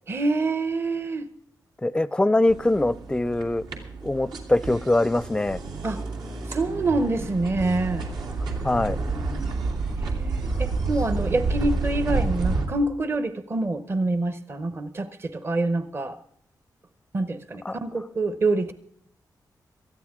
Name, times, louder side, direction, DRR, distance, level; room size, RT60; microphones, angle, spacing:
voice 1, 0.1-1.3 5.8-6.0 6.5-8.1 10.0-16.2 17.1-18.7, right 2 dB, 35° right, 0.8 m, -26 dB
voice 2, 1.8-3.6 4.0-5.6 8.6-9.0 17.6-17.8, left 2 dB, 10° left, 0.4 m, -23 dB
sound 1, 2.5-12.7, right 3 dB, 85° right, 2.7 m, -29 dB
19.0 x 13.5 x 3.6 m
wide cardioid pair, 135°, 7 cm